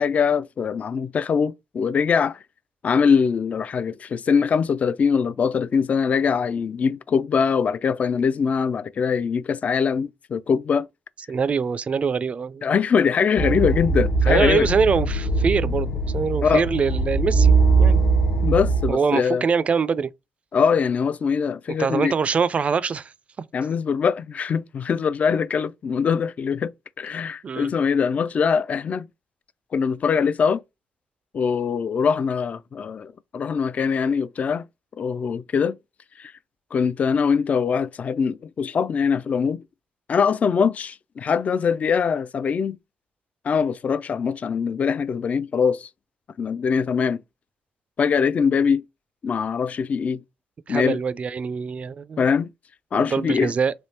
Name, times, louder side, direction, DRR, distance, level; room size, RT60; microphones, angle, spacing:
voice 1, 0.0-2.4 2.8-10.9 12.6-14.7 16.4-16.6 18.4-19.4 20.5-22.1 23.5-26.7 27.0-29.1 29.7-30.6 31.3-34.6 35.0-35.8 36.2-36.3 36.7-39.6 40.1-42.8 43.4-45.9 46.4-47.2 48.0-48.8 49.2-50.2 50.7-51.0 52.2-52.5 52.9-53.5, left 6 dB, 50° left, 0.3 m, -22 dB
voice 2, 11.3-12.6 14.3-18.0 18.9-20.1 21.8-23.1 27.4-27.7 50.7-52.3 52.9-53.7, right 5 dB, 45° right, 0.3 m, -24 dB
sound 1, 13.4-18.9, right 3 dB, 70° left, 0.8 m, -21 dB
3.4 x 2.5 x 2.8 m
hypercardioid pair, 50°, 3 cm